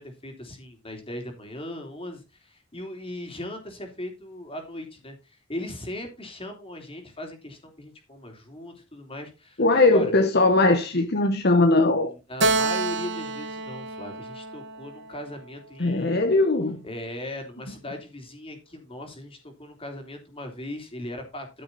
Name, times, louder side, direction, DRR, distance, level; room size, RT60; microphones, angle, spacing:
voice 1, 0.0-10.2 11.8-16.3 16.8-21.6, left 1 dB, 30° left, 3.5 m, -38 dB
voice 2, 9.6-12.1 15.8-16.8, left 2 dB, 50° left, 1.1 m, -20 dB
Keyboard (musical), 12.4-15.9, right 3 dB, 60° right, 2.2 m, -28 dB
14.0 x 6.7 x 4.2 m
head